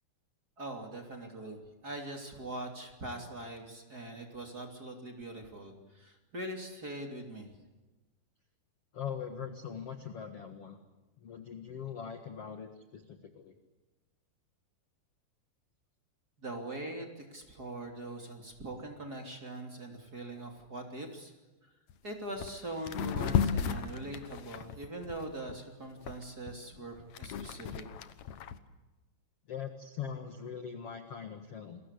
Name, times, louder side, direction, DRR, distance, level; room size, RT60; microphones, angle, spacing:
voice 1, 0.6-7.5 16.4-21.3 21.6-21.7 22.0-27.9, right 1 dB, 25° right, 3 dB, 3.0 m, -42 dB
voice 2, 8.9-10.8 11.2-13.5 29.5-31.8, left 7 dB, 55° left, 7 dB, 1.7 m, -41 dB
sound 1, 21.9-22.0 22.4-22.6 22.9-25.5 26.1-28.6, left 8 dB, 85° left, 1.5 m, -34 dB
29.5 x 22.0 x 8.4 m, 1.1 s
omnidirectional pair, 5.0 m